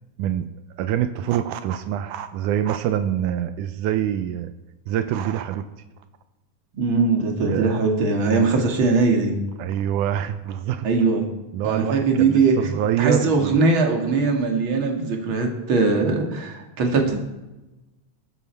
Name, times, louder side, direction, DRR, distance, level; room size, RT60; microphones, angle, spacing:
voice 1, 0.2-0.5 0.8-4.5 4.9-5.7 7.4-7.7 9.6-10.9 11.5-13.6, right 10 dB, 85° right, 10 dB, 2.2 m, -25 dB
voice 2, 6.7-9.4 10.8-11.3 11.6-17.2, right 4 dB, 45° right, 2 dB, 2.6 m, -21 dB
21.5 x 12.0 x 4.6 m, 1.0 s
omnidirectional pair, 3.5 m